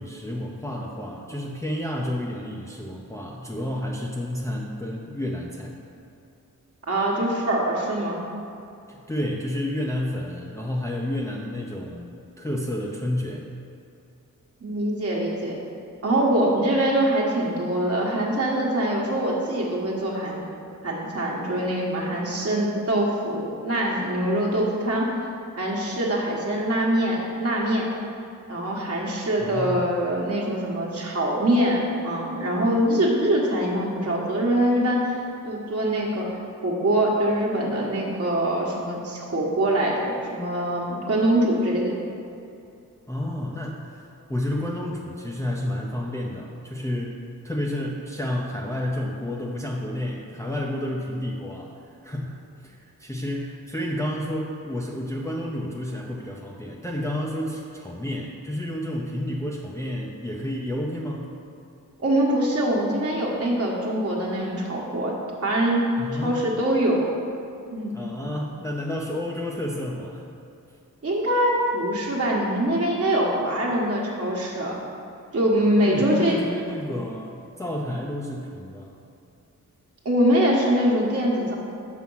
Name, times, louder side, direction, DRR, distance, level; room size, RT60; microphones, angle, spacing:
voice 1, 0.0-5.8 8.9-12.1 12.4-13.5 29.4-29.8 43.1-52.4 52.6-61.3 66.0-66.4 67.9-70.3 75.8-79.0, left 1 dB, 10° left, -3 dB, 0.6 m, -30 dB
voice 2, 6.9-8.2 14.6-15.6 16.0-20.4 20.8-25.1 25.6-27.9 28.5-36.3 36.6-42.0 62.0-65.1 65.4-65.9 66.1-67.0 67.7-68.0 71.0-74.8 75.3-76.4 80.0-81.6, right 1 dB, 45° right, -3 dB, 1.4 m, -23 dB
6.3 x 5.8 x 5.6 m, 2.6 s
wide cardioid pair, 100°, 32 cm